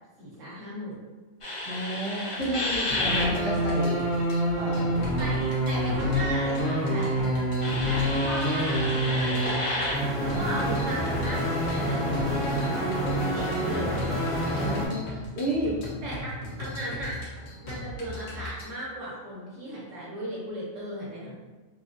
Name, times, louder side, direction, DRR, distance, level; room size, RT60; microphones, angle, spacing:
voice 1, 0.2-1.0 2.9-3.1 5.2-7.3 7.8-14.1 16.0-17.2 17.6-21.4, right 1 dB, 70° right, -6 dB, 1.2 m, -36 dB
sound 1, 1.4-14.9, equal, 40° left, 0.4 m, -27 dB
voice 2, 1.6-4.1 4.6-5.0 6.9-7.2 10.3-10.6 14.5-15.8, right 1 dB, 35° right, -8 dB, 0.9 m, -32 dB
sound 2, 2.4-18.6, left 1 dB, 85° left, 1.2 m, -40 dB
3.2 x 2.3 x 2.5 m, 1.3 s
omnidirectional pair, 1.4 m